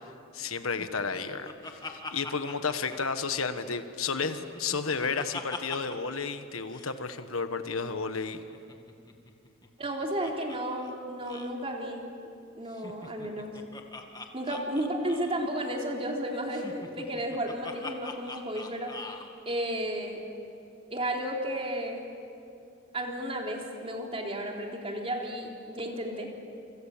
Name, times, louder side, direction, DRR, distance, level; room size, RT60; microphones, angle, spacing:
voice 1, 0.3-8.4, left 5 dB, 80° left, 9 dB, 1.4 m, -32 dB
Laughter, 0.8-3.7 4.1-6.2 6.4-6.5 6.7-7.0 8.2-10.6 10.8-10.9 11.2-11.5 12.7-15.5 16.5-19.3, left 3 dB, 20° left, 2.0 m, -43 dB
voice 2, 9.8-12.0 12.5-13.5 14.3-18.9 19.5-20.2 20.9-22.0 22.9-26.3, right 1 dB, 30° right, 0 dB, 3.8 m, -33 dB
28.0 x 26.5 x 7.5 m, 2.7 s
head